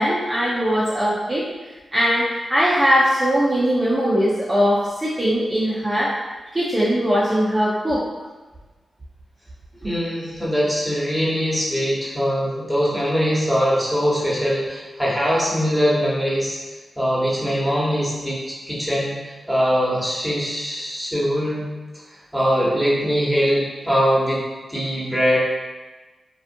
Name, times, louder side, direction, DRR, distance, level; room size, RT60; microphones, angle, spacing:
voice 1, 0.0-1.5 1.9-6.1 6.5-8.1, equal, 25° right, -9 dB, 0.6 m, -20 dB
voice 2, 9.8-16.6 17.0-19.1 19.5-21.7 22.3-24.4 24.7-25.4, equal, ahead, -7 dB, 1.1 m, -22 dB
2.5 x 2.4 x 2.6 m, 1.2 s
supercardioid pair, 45°, 0 cm